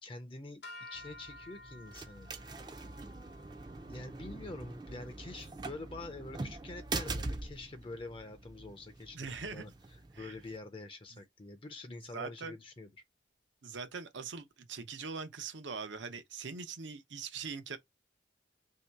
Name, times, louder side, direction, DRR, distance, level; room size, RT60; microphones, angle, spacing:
voice 1, 0.0-2.5 3.8-12.9, left 2 dB, 30° left, 0.5 m, -46 dB
sound 1, 0.6-7.0, left 2 dB, 65° left, 0.9 m, -55 dB
sound 2, 0.9-10.6, right 3 dB, 25° right, 0.4 m, -43 dB
voice 2, 9.1-9.7 10.1-10.3 12.1-12.5 13.6-17.8, right 5 dB, 75° right, 0.7 m, -42 dB
3.1 x 2.8 x 4.5 m
head